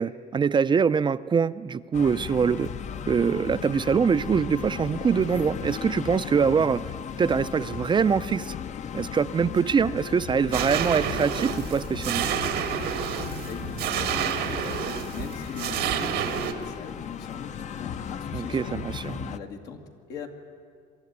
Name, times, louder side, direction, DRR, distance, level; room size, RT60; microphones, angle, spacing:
voice 1, 0.0-2.7 3.1-6.8 7.2-8.6 8.9-12.3 18.3-19.3, right 6 dB, 30° right, 14 dB, 0.4 m, -24 dB
sound 1, 1.9-19.4, left 8 dB, 45° left, 0.6 m, -36 dB
Explosion, 4.5-6.1 6.7-7.6, left 4 dB, 70° left, 6.0 m, -50 dB
sound 2, 10.5-16.5, right 9 dB, 85° right, 1.6 m, -29 dB
voice 2, 13.4-19.8 20.1-20.3, left 6 dB, 85° left, 3 dB, 2.2 m, -41 dB
23.0 x 13.0 x 9.6 m, 2.1 s
cardioid pair, 110°, 17 cm